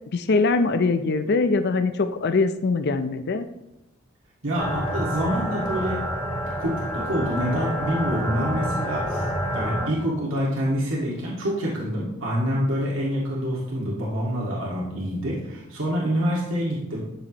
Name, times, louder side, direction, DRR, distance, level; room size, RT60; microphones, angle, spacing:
voice 1, 0.1-3.4, left 3 dB, 55° left, 9 dB, 0.5 m, -22 dB
voice 2, 4.4-6.0 6.6-9.3 9.5-17.0, equal, 70° right, -5 dB, 2.0 m, -26 dB
sound 1, 4.6-9.9, equal, 10° left, 3.3 m, -28 dB
11.5 x 6.9 x 3.0 m, 0.93 s
head